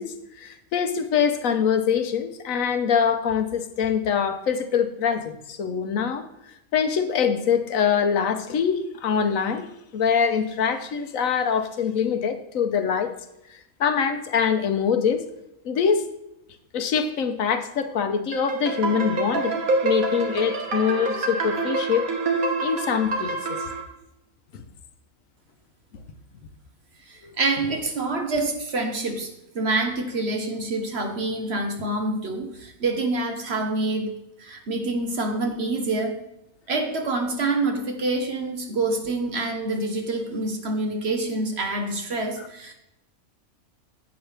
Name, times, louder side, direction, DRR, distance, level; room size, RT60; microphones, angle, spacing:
voice 1, 0.0-6.2 6.7-13.1 13.8-15.2 15.6-16.0 16.7-22.1 22.6-23.6, left 7 dB, 75° left, 9 dB, 1.2 m, -24 dB
sound 1, 18.3-23.8, right 3 dB, 90° right, 1.9 m, -26 dB
voice 2, 27.1-29.3 29.5-34.1 34.4-36.2 36.7-42.7, right 2 dB, 50° right, 4 dB, 1.4 m, -26 dB
11.0 x 8.0 x 3.4 m, 0.86 s
omnidirectional pair, 1.4 m